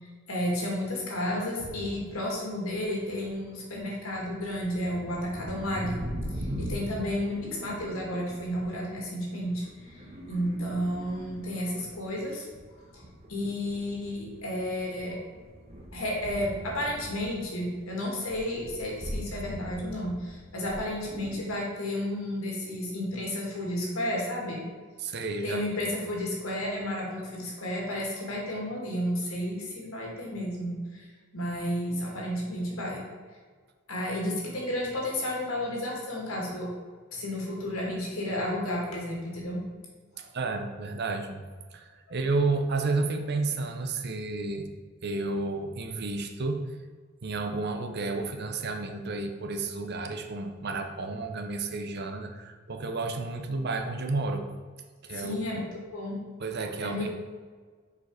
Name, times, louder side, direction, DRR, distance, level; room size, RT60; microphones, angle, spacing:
voice 1, 0.3-6.0 6.3-10.0 10.3-12.5 12.9-13.0 13.3-15.2 15.9-24.7 25.4-31.1 31.3-33.0 33.9-36.7 37.1-39.6 40.2-40.3 55.1-55.7 55.9-56.2 56.8-57.1, left 1 dB, 85° left, -2 dB, 2.3 m, -32 dB
sound 1, 1.6-2.0 2.7-3.3 3.7-12.1 12.5-17.8 18.1-21.4, equal, 30° right, 1.1 m, -41 dB
voice 2, 25.0-25.6 40.2-41.4 41.7-44.7 45.0-46.6 47.2-54.5 55.0-55.4 56.4-57.1, right 3 dB, 50° right, 6 dB, 0.7 m, -31 dB
6.9 x 5.0 x 4.8 m, 1.5 s
head